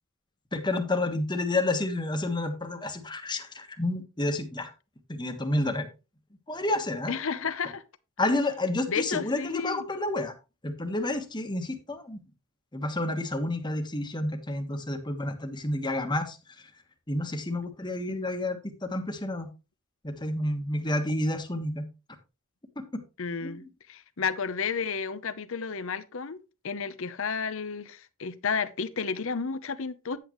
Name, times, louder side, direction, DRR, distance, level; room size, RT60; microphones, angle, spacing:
voice 1, 0.5-4.7 5.1-5.9 6.5-7.4 8.2-10.3 10.6-12.2 12.7-16.7 17.1-19.5 20.0-21.9 22.8-22.9 23.4-23.6, left 2 dB, 20° left, 1.4 m, -30 dB
voice 2, 7.1-7.8 8.9-9.8 23.2-26.4 26.6-30.2, left 5 dB, 65° left, 0.8 m, -32 dB
9.7 x 8.5 x 3.1 m
head